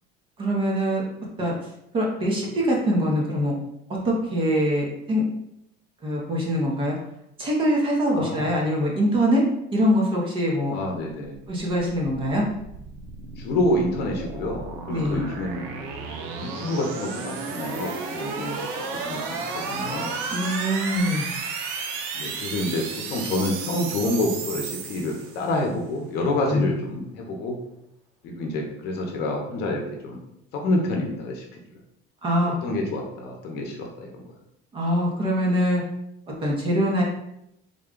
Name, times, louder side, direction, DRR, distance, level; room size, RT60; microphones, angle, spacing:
voice 1, 0.4-1.0 1.4-1.5 1.9-3.5 4.0-5.2 6.0-6.9 7.4-9.4 9.7-10.7 11.5-12.4 14.9-15.2 20.3-21.3 26.5-26.7 32.2-32.5 34.7-35.8 36.4-37.0, equal, 25° right, -2 dB, 0.8 m, -23 dB
voice 2, 8.1-8.5 10.7-11.4 13.4-15.9 16.4-20.2 22.2-27.6 28.2-30.2 30.5-31.6 32.5-34.3, left 1 dB, 50° left, 1 dB, 0.8 m, -28 dB
sound 1, 11.6-25.6, right 5 dB, 85° right, 0.6 m, -33 dB
3.7 x 2.3 x 3.7 m, 0.80 s
cardioid pair, 165°, 21 cm